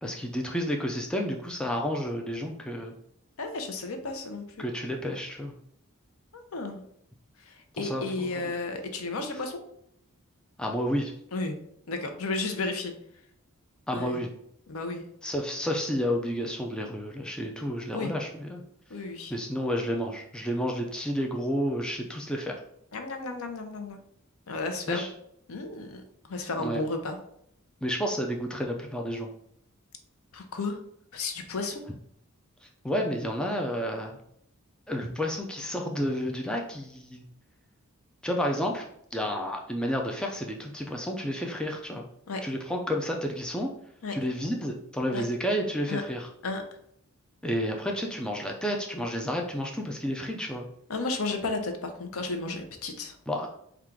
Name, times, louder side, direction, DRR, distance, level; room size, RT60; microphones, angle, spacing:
voice 1, 0.0-2.9 4.6-5.5 7.8-8.5 10.6-11.1 13.9-14.3 15.2-18.6 19.3-22.6 24.9-25.1 26.6-26.8 27.8-29.3 32.6-34.2 34.9-37.2 38.2-42.1 42.4-43.7 44.1-46.3 47.4-50.7 53.3-53.5, equal, 5° left, 1 dB, 0.3 m, -31 dB
voice 2, 3.4-4.5 6.3-6.8 7.5-9.6 11.3-11.5 11.9-12.9 13.9-14.2 14.7-15.0 17.9-18.1 18.9-19.3 22.9-24.0 24.5-25.0 25.5-26.0 26.3-27.2 30.3-30.8 31.1-31.8 42.3-42.4 44.0-44.1 45.1-45.2 45.9-46.0 46.4-46.6 50.9-53.2, left 3 dB, 75° left, 6 dB, 0.6 m, -33 dB
3.6 x 2.4 x 4.5 m, 0.71 s
head